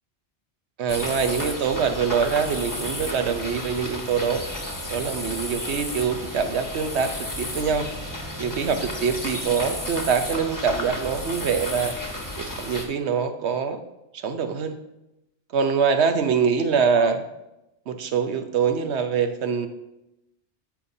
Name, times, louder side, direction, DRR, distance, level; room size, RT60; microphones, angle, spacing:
voice 1, 0.8-4.4 4.9-7.9 8.4-11.9 12.4-13.8 14.1-14.8 15.5-17.3 17.9-19.7, right 6 dB, 70° right, 8 dB, 1.0 m, -24 dB
sound 1, 0.9-12.8, left 1 dB, 15° left, 1.1 m, -32 dB
13.0 x 5.5 x 2.7 m, 0.89 s
omnidirectional pair, 1.2 m